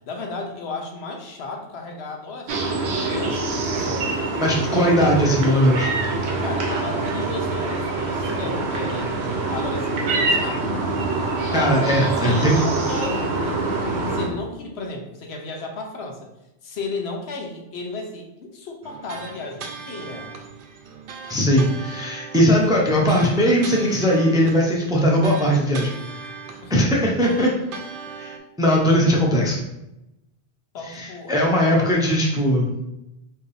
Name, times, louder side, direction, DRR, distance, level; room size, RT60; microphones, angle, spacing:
voice 1, 0.1-4.1 6.4-9.1 9.5-10.8 11.5-11.7 12.2-13.6 14.1-16.3 16.6-20.3 26.6-26.7 30.7-32.0, left 3 dB, 75° left, 1 dB, 1.0 m, -34 dB
sound 1, 2.5-14.3, right 3 dB, 85° right, 1.0 m, -25 dB
voice 2, 4.4-5.9 11.5-12.6 21.3-26.3 26.7-27.5 28.2-29.6 30.8-32.7, equal, 5° right, -2 dB, 0.5 m, -19 dB
sound 2, 18.8-28.4, right 5 dB, 60° right, 0.7 m, -39 dB
4.4 x 2.6 x 3.3 m, 0.91 s
omnidirectional pair, 1.1 m